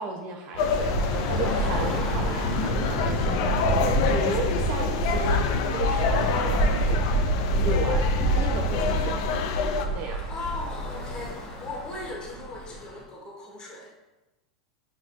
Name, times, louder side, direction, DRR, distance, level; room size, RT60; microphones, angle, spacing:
voice 1, 0.0-5.4 5.7-7.0 7.6-9.2 9.9-10.2, right 4 dB, 45° right, 2 dB, 0.5 m, -34 dB
Bus / Traffic noise roadway noise, 0.5-13.0, right 1 dB, 40° left, 1.1 m, -27 dB
sound 1, 0.6-9.9, left 6 dB, 60° left, 0.4 m, -28 dB
voice 2, 5.4-5.7 10.3-13.9, left 2 dB, 25° left, -2 dB, 1.3 m, -38 dB
5.8 x 2.7 x 2.5 m, 1.1 s
hypercardioid pair, 90°, 3 cm